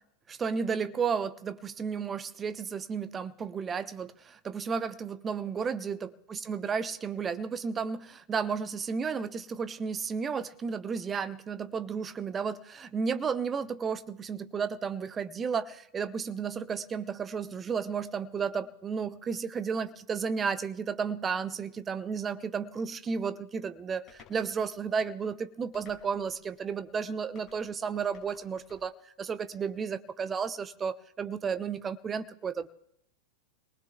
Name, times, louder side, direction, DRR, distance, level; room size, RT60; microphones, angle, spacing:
voice 1, 0.3-32.7, right 6 dB, 20° right, 0.7 m, -33 dB
sound 1, 24.1-24.4 25.7-26.3 27.4-27.6 28.1-28.9, left 7 dB, 30° left, 5.6 m, -55 dB
28.5 x 19.5 x 2.3 m
figure-of-eight pair, 90°, 0 cm